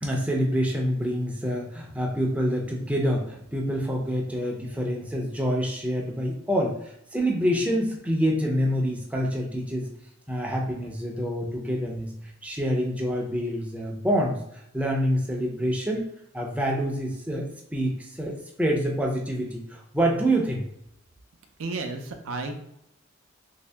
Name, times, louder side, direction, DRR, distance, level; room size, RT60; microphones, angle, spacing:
voice 1, 0.0-9.9 10.3-16.0 16.3-20.7, equal, 5° right, -1 dB, 0.4 m, -27 dB
voice 2, 21.6-22.5, right 3 dB, 80° right, 5 dB, 0.5 m, -32 dB
2.9 x 2.7 x 3.3 m, 0.76 s
head